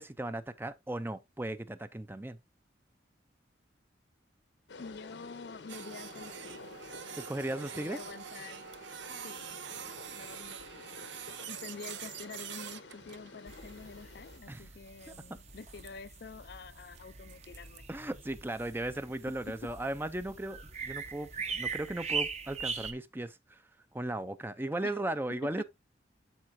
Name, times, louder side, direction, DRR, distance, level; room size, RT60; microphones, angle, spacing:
voice 1, 0.0-2.4 7.2-8.0 14.5-14.6 15.1-15.2 17.9-23.6 23.9-25.6, right 1 dB, 10° right, 0.5 m, -36 dB
sound 1, 4.7-14.4, left 3 dB, 75° left, 0.9 m, -50 dB
voice 2, 4.8-6.6 7.7-8.6 9.2-11.2 11.5-17.8 19.5-19.7 24.8-25.0 25.4-25.6, left 4 dB, 60° left, 0.4 m, -48 dB
Printer, 5.7-17.8, right 9 dB, 75° right, 0.7 m, -46 dB
sound 2, 13.5-22.9, right 5 dB, 35° right, 1.0 m, -41 dB
12.5 x 4.2 x 2.6 m
head